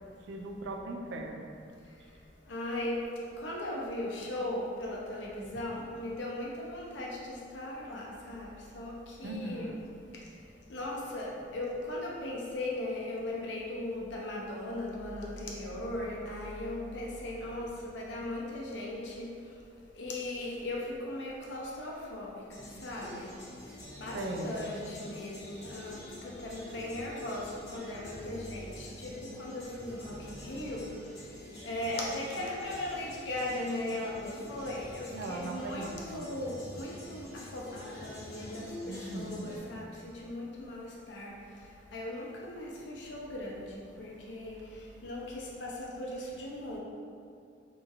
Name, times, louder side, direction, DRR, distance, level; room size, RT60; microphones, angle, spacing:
voice 1, 0.3-1.5 9.2-9.8 24.1-24.6 35.1-36.2 38.8-39.5, right 1 dB, 75° right, 2 dB, 0.3 m, -38 dB
voice 2, 2.5-3.1 3.4-8.5 8.7-8.9 9.2-9.7 10.7-19.3 20.0-22.3 22.8-23.3 24.0-26.0 26.4-29.1 29.4-30.1 30.4-30.8 31.6-37.3 37.5-39.9 40.2-41.3 41.9-43.7 44.0-44.5 45.0-46.8, left 1 dB, 75° left, -3 dB, 0.5 m, -38 dB
sound 1, 22.5-39.6, left 1 dB, 40° left, 0.9 m, -47 dB
2.8 x 2.6 x 2.4 m, 2.3 s
head